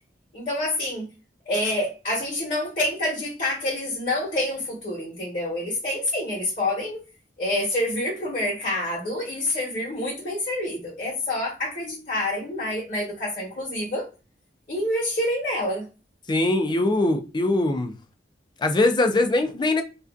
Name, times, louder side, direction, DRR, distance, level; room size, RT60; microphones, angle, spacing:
voice 1, 0.3-1.0 1.5-7.0 7.4-14.1 14.7-15.8, left 1 dB, 45° left, 1.0 m, -27 dB
voice 2, 16.3-17.9 18.6-19.8, left 2 dB, 25° left, 0.3 m, -22 dB
2.4 x 2.3 x 2.3 m
head